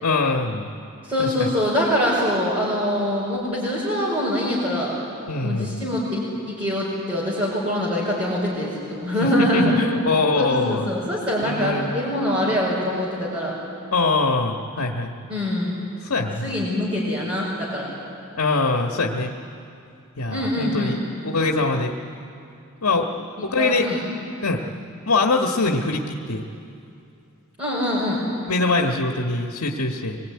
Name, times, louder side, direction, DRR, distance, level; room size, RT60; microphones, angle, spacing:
voice 1, 0.0-0.7 1.2-1.5 5.3-5.8 9.5-10.8 11.4-11.9 13.9-15.1 16.0-16.6 18.3-19.3 20.2-21.0 21.2-21.9 22.8-23.9 24.4-24.6 25.1-26.4 28.5-30.2, left 3 dB, 80° left, 2 dB, 1.5 m, -23 dB
voice 2, 1.1-5.0 5.4-6.3 6.6-9.7 10.3-13.5 15.3-15.8 16.4-17.9 20.3-21.0 23.6-24.0 27.6-28.2, left 1 dB, 25° right, -8 dB, 5.4 m, -24 dB
25.0 x 20.5 x 9.6 m, 2.5 s
head